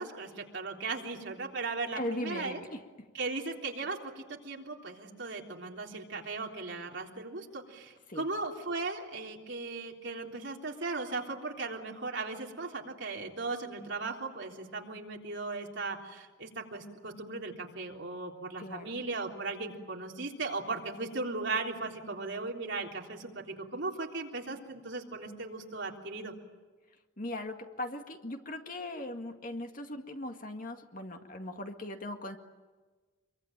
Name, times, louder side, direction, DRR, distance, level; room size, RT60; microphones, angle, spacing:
voice 1, 0.0-2.6 3.1-23.4 23.7-26.3, right 3 dB, 60° right, 0 dB, 3.5 m, -37 dB
voice 2, 1.9-2.8 8.1-8.3 18.6-18.9 27.2-32.4, left 1 dB, 40° left, 5 dB, 2.0 m, -39 dB
26.5 x 23.5 x 9.2 m, 1.3 s
head